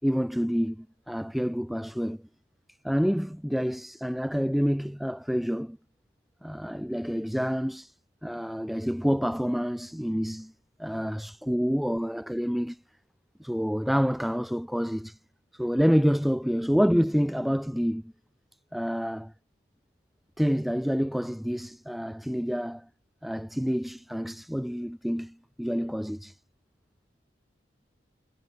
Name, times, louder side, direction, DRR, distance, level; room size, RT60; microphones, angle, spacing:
voice 1, 0.0-2.3 2.8-5.8 6.4-8.0 8.2-10.5 10.8-12.8 13.4-15.2 15.5-18.1 18.7-19.3 20.4-22.9 23.2-26.4, equal, ahead, 0.4 m, -28 dB
head